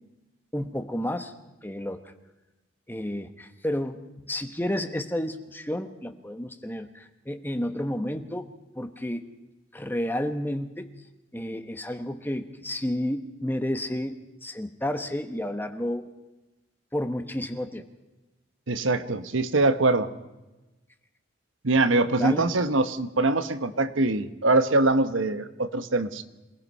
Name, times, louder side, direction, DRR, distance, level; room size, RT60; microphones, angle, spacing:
voice 1, 0.5-1.3 1.6-2.0 2.9-8.5 8.8-9.2 9.7-10.9 11.3-14.1 14.4-16.1 16.9-17.8 22.2-22.5, left 1 dB, 10° left, 8 dB, 1.2 m, -31 dB
voice 2, 18.7-20.1 21.6-26.2, right 2 dB, 80° right, 10 dB, 1.2 m, -23 dB
27.0 x 19.0 x 5.5 m, 1.1 s
head